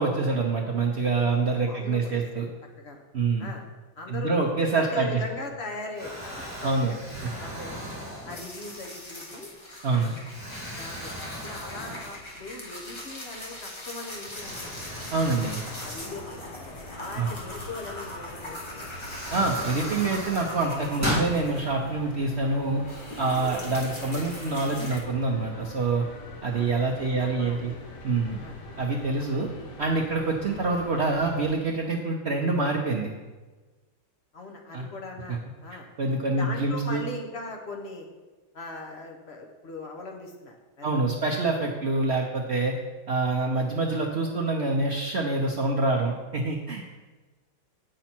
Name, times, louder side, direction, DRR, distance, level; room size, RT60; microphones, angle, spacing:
voice 1, 0.0-2.5 3.1-3.5 4.1-5.1 6.6-6.9 9.8-10.2 15.1-15.6 17.2-17.3 19.3-22.8 23.2-26.0 26.4-27.7 28.0-28.4 28.8-29.5 29.8-33.1 34.7-34.9 35.3-35.4 36.0-37.0 40.8-42.8 43.1-46.8, right 3 dB, 75° right, -1 dB, 0.6 m, -26 dB
voice 2, 1.7-2.4 2.8-3.0 3.4-3.7 4.0-7.0 7.4-7.9 8.3-9.5 10.1-10.2 10.8-11.1 11.4-14.7 15.6-18.9 26.5-26.8 27.1-27.8 28.4-28.6 34.3-35.9 36.4-38.1 38.5-40.9, left 3 dB, 45° left, 2 dB, 1.0 m, -40 dB
Explosion, 5.3-5.6 6.0-8.8 9.4-9.6 10.3-12.5 12.9-13.0 14.2-16.9 18.3-18.4 18.8-21.3, equal, 10° right, 2.5 m, -37 dB
sound 1, 8.3-22.1 22.4-25.0, left 1 dB, 25° left, 0.7 m, -41 dB
sound 2, 14.4-31.5, left 1 dB, 60° left, 1.7 m, -44 dB
8.2 x 6.3 x 4.4 m, 1.3 s
omnidirectional pair, 2.1 m